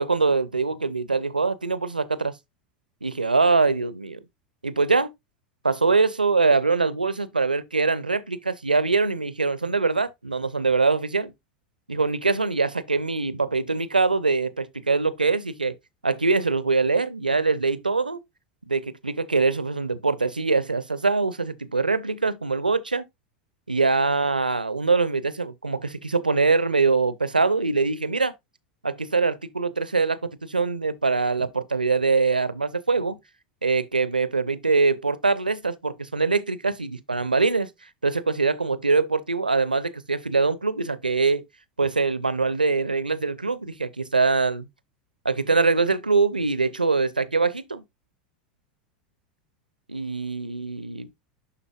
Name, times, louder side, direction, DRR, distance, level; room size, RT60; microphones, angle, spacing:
voice 1, 0.0-2.4 3.0-4.2 4.6-5.1 5.6-11.3 11.9-15.7 16.0-18.2 18.7-23.0 23.7-28.3 28.8-33.2 33.6-37.7 38.0-41.4 41.8-44.7 45.2-47.8 49.9-51.1, right 4 dB, 85° right, 0.6 m, -23 dB
11.5 x 4.0 x 2.3 m
figure-of-eight pair, 85°, 5 cm